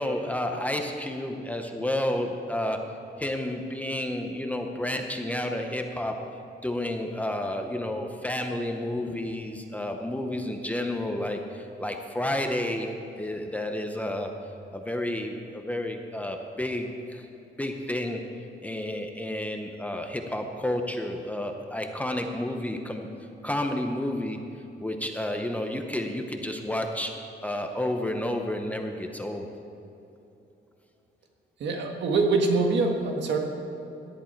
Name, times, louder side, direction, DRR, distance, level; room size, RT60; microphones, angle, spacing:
voice 1, 0.0-2.9 3.2-6.2 6.6-12.9 13.2-14.3 14.7-17.3 17.6-18.2 18.6-23.1 23.4-24.4 24.8-29.5, left 1 dB, 10° left, 4 dB, 0.7 m, -31 dB
voice 2, 31.6-33.4, right 3 dB, 70° right, 2 dB, 1.7 m, -24 dB
17.5 x 11.0 x 4.5 m, 2.9 s
cardioid pair, 180°, 19 cm